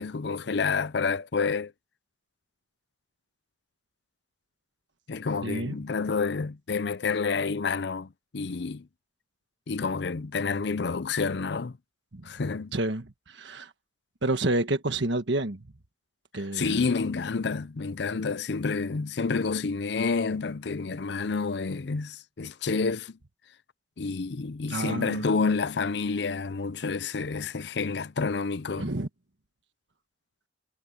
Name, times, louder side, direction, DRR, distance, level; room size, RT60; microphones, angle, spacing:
voice 1, 0.0-1.7 5.1-8.9 9.7-11.8 12.2-12.7 16.5-23.2 24.0-28.9, left 4 dB, 65° left, 0.6 m, -29 dB
voice 2, 5.4-5.8 12.1-12.3 12.7-13.7 14.2-15.6 16.3-16.8 24.7-25.3 28.8-29.1, right 2 dB, 75° right, 1.4 m, -29 dB
head